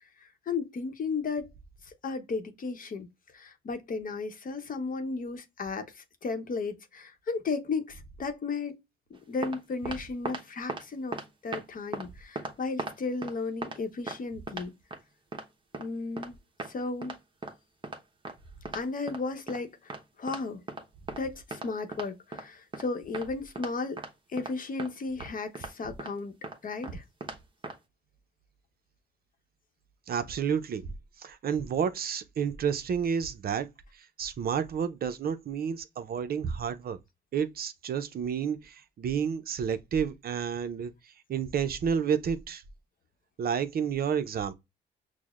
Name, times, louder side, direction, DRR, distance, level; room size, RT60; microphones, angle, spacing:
voice 1, 0.2-1.5 1.8-3.1 3.3-8.8 9.1-14.7 15.8-16.3 16.7-17.1 18.7-19.9 20.2-20.6 21.2-24.0 24.3-26.4 26.6-27.0, left 4 dB, 45° left, 0.8 m, -34 dB
sound 1, 9.2-9.6 9.9-10.4 10.7-10.8 11.1-11.6 11.9-12.1 12.4-13.3 13.6-13.8 14.1-14.2 14.5-15.0 15.3-15.5 15.7-15.9 16.2-16.3 16.6-16.7 17.0-17.2 17.4-17.5 17.8-18.0 18.2-18.4 18.7-19.2 19.5-19.6 19.9-20.0 20.3-20.4 20.7-21.2 21.5-22.5 22.7-22.9 23.1-23.3 23.6-23.7 24.0-24.1 24.4-24.5 24.8-24.9 25.2-25.3 25.6-25.7 26.0-26.1 26.4-26.6 26.8-26.9 27.2-27.4 27.6-27.8, right 3 dB, 25° right, 0.9 m, -37 dB
voice 2, 30.1-30.9 31.2-33.7 33.9-37.0 37.3-42.6 43.4-44.5, right 7 dB, 50° right, 0.5 m, -30 dB
6.1 x 2.0 x 2.4 m
cardioid pair, 90°, 20 cm